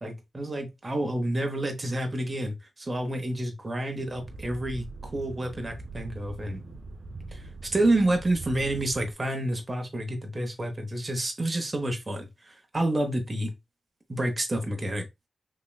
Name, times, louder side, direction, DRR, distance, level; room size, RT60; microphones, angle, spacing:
voice 1, 0.0-6.6 7.3-13.5 14.1-15.1, right 1 dB, 30° right, 0.9 m, -29 dB
sound 1, 4.0-9.1, right 2 dB, 65° right, 0.5 m, -42 dB
3.2 x 2.9 x 2.3 m
cardioid pair, 60°, 0 cm